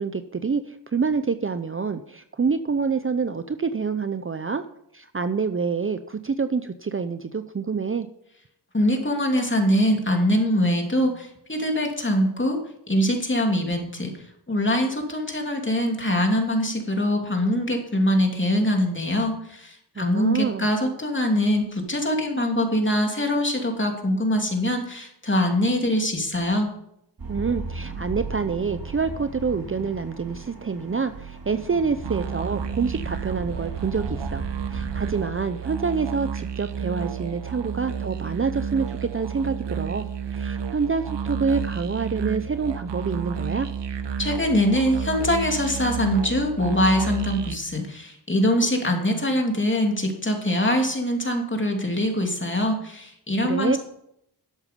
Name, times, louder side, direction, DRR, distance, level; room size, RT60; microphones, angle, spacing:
voice 1, 0.0-4.6 4.9-8.1 20.0-20.7 27.3-43.7 53.4-53.8, right 5 dB, 30° right, 11 dB, 0.7 m, -27 dB
voice 2, 8.7-12.6 12.9-14.1 14.5-26.7 44.2-53.8, equal, 25° left, 2 dB, 2.9 m, -23 dB
sound 1, 27.2-35.3, right 3 dB, 55° right, 2.9 m, -36 dB
sound 2, 32.0-47.6, right 7 dB, 80° right, 0.9 m, -31 dB
12.0 x 8.0 x 5.3 m, 0.75 s
cardioid pair, 55°, 42 cm